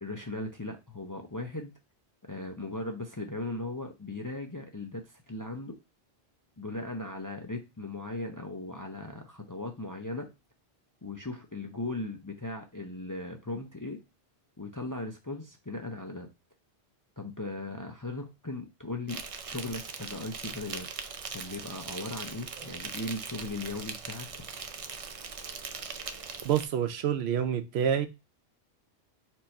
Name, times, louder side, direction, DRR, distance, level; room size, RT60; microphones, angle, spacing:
voice 1, 0.0-1.7 2.3-5.8 6.6-10.3 11.0-14.0 14.6-16.3 17.2-20.9 21.3-24.4, left 2 dB, 25° left, 0.4 m, -38 dB
Insect, 19.1-26.7, right 5 dB, 50° right, 0.4 m, -40 dB
voice 2, 26.4-28.1, right 9 dB, 80° right, 0.9 m, -27 dB
4.5 x 2.6 x 4.2 m
omnidirectional pair, 1.1 m